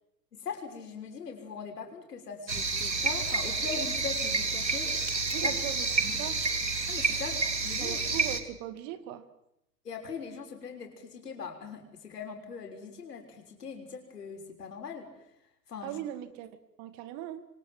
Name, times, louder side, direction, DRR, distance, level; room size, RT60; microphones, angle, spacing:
voice 1, 0.3-4.9 5.4-5.5 5.9-6.2 6.9-7.4 7.6-8.0 9.8-15.1 15.7-16.0, left 5 dB, 70° left, 4 dB, 6.6 m, -40 dB
sound 1, 2.5-8.4, right 4 dB, 90° right, 2.6 m, -29 dB
voice 2, 5.3-5.9 6.2-6.4 7.8-9.2 15.8-16.5 16.8-17.4, right 12 dB, 35° right, 11 dB, 2.3 m, -39 dB
27.5 x 24.5 x 7.9 m, 0.82 s
figure-of-eight pair, 105°, 50 cm